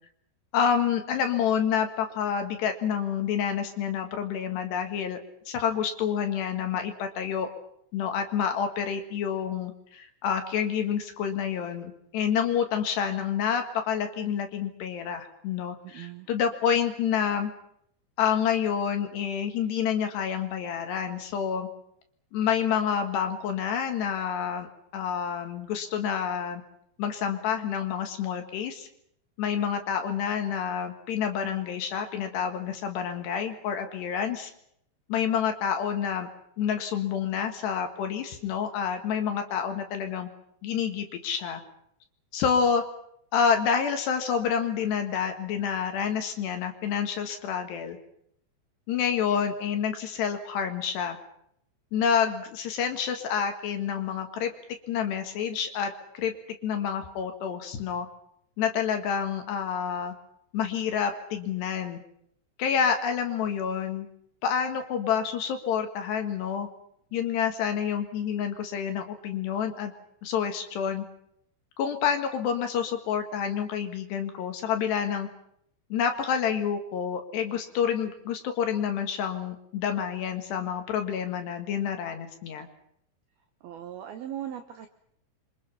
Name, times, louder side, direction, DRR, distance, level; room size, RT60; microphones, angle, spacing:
voice 1, 0.5-5.2 5.5-7.5 7.9-17.5 18.2-21.7 22.3-24.7 24.9-26.6 27.0-28.9 29.4-34.5 35.1-36.3 36.6-40.3 40.6-41.6 42.3-42.8 43.3-48.0 48.9-51.2 51.9-54.5 54.9-56.3 56.6-58.1 58.6-60.2 60.5-62.0 62.6-64.1 64.4-66.7 67.1-69.9 70.2-71.1 71.8-75.3 75.9-82.7, left 7 dB, 60° left, 5 dB, 3.5 m, -28 dB
voice 2, 15.8-16.3 83.6-84.9, right 11 dB, 75° right, 7 dB, 2.2 m, -39 dB
28.0 x 25.0 x 5.7 m, 0.72 s
omnidirectional pair, 6.0 m